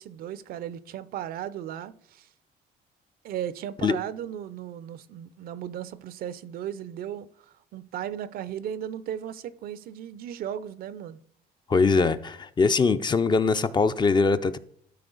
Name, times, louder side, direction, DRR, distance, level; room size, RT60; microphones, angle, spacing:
voice 1, 0.0-2.3 3.2-7.3 7.7-11.2, right 10 dB, 60° right, 0.5 m, -36 dB
voice 2, 11.7-14.6, left 4 dB, 25° left, 0.4 m, -22 dB
12.5 x 4.2 x 3.9 m
cardioid pair, 110°, 17 cm